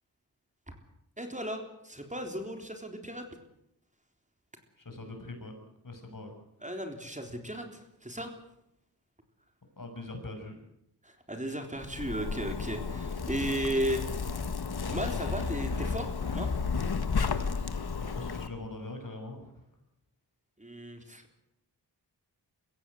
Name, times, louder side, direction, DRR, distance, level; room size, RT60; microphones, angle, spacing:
voice 1, 1.2-3.3 6.6-8.4 11.0-14.0 14.9-16.5 20.6-21.2, right 1 dB, 20° right, 4 dB, 3.8 m, -35 dB
voice 2, 4.8-5.5 5.8-6.3 9.8-10.6 18.0-19.5, left 2 dB, 55° left, 5 dB, 6.1 m, -42 dB
Zipper (clothing), 11.8-18.5, left 5 dB, 70° left, 1.8 m, -32 dB
23.0 x 16.0 x 7.9 m, 0.79 s
cardioid pair, 55°, 40 cm